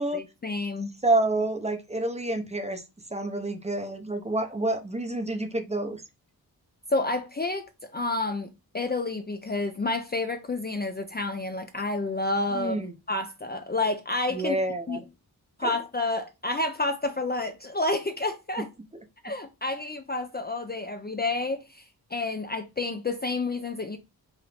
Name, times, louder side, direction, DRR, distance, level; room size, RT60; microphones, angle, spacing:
voice 1, 0.1-0.9 6.9-12.8 13.1-14.6 14.9-15.0 15.6-18.7 19.2-21.9 22.1-24.0, left 2 dB, 25° left, 0.4 m, -29 dB
voice 2, 1.0-2.8 3.1-6.0 12.5-12.9 14.3-15.0 15.6-15.7, right 2 dB, 15° right, 0.6 m, -28 dB
4.8 x 2.6 x 3.3 m
wide cardioid pair, 150°, 38 cm